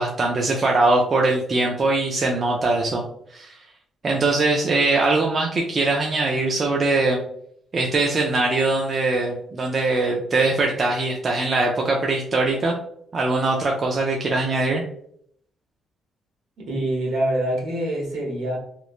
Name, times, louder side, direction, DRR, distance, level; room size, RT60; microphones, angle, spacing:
voice 1, 0.0-3.1 3.3-3.6 4.0-7.2 7.7-12.8 13.1-14.8, right 2 dB, 40° right, 0 dB, 0.4 m, -21 dB
voice 2, 16.6-18.6, right 1 dB, 75° right, -2 dB, 1.0 m, -25 dB
3.0 x 2.1 x 2.4 m, 0.67 s
cardioid pair, 90°, 0 cm